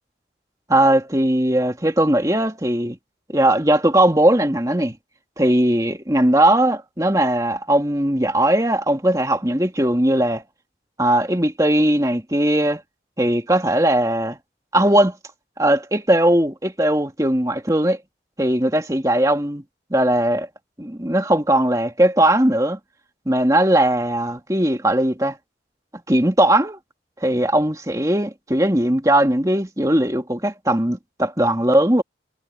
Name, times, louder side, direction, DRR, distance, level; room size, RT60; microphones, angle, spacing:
voice 1, 0.7-3.0 3.3-5.0 5.4-10.4 11.0-12.8 13.2-14.4 14.7-15.2 15.6-18.0 18.4-19.6 19.9-20.5 20.8-22.8 23.3-25.4 26.1-26.8 27.2-32.0, right 1 dB, 20° right, 2.3 m, -19 dB
head